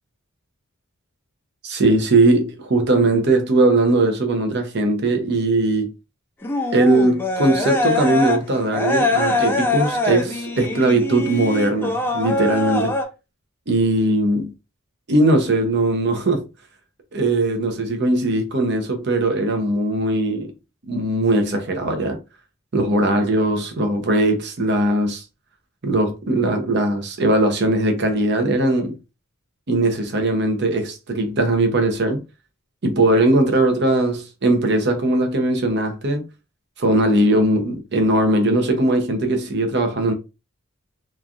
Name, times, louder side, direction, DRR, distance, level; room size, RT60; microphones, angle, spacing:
voice 1, 1.6-5.9 6.7-13.0 13.7-14.5 15.1-16.5 17.1-20.5 20.9-22.2 22.7-25.2 25.8-29.0 29.7-32.2 32.8-36.2 36.8-40.1, right 2 dB, 55° right, 0.7 m, -19 dB
sound 1, 6.4-8.4 8.7-13.1, left 2 dB, 10° left, 0.4 m, -23 dB
3.1 x 2.5 x 2.4 m
head